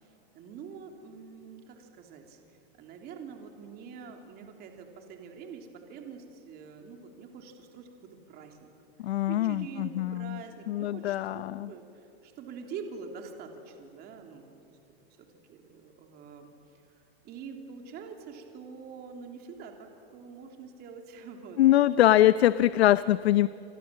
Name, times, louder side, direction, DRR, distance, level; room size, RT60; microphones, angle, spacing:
voice 1, 0.0-2.4 2.8-8.7 9.0-14.8 15.2-16.5 16.9-21.9, right 5 dB, 30° right, 3 dB, 3.2 m, -45 dB
voice 2, 9.0-10.4 10.7-11.7 21.6-23.5, left 13 dB, 90° left, 15 dB, 0.7 m, -23 dB
29.0 x 26.5 x 7.6 m, 2.9 s
supercardioid pair, 150°, 31 cm